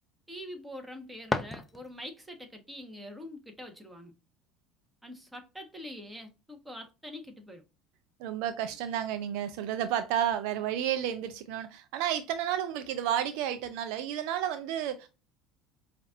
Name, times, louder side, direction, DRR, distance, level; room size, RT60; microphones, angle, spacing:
voice 1, 0.3-4.1 5.0-7.6, left 1 dB, 10° right, 1.3 m, -44 dB
sound 1, 0.8-2.3, left 3 dB, 15° left, 0.6 m, -35 dB
voice 2, 8.2-15.1, right 10 dB, 70° right, 0.4 m, -31 dB
5.1 x 2.5 x 2.6 m
hypercardioid pair, 75°, 0 cm